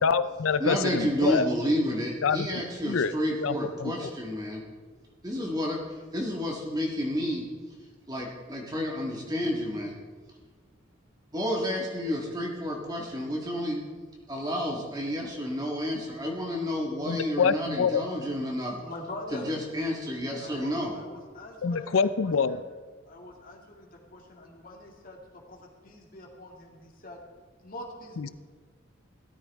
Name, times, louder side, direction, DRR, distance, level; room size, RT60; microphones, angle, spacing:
voice 1, 0.0-1.5 2.2-3.1 3.4-4.1 17.1-18.1 21.6-22.6, left 5 dB, 80° left, 14 dB, 0.5 m, -26 dB
voice 2, 0.6-4.6 5.2-5.8 6.1-7.5 8.1-9.9 11.3-13.9 14.3-18.8 19.3-20.9, equal, 20° right, -2 dB, 1.7 m, -30 dB
voice 3, 18.8-19.5 20.4-22.7 23.1-27.2 27.6-28.3, left 1 dB, 45° left, 0 dB, 2.4 m, -44 dB
17.0 x 13.5 x 3.6 m, 1.5 s
head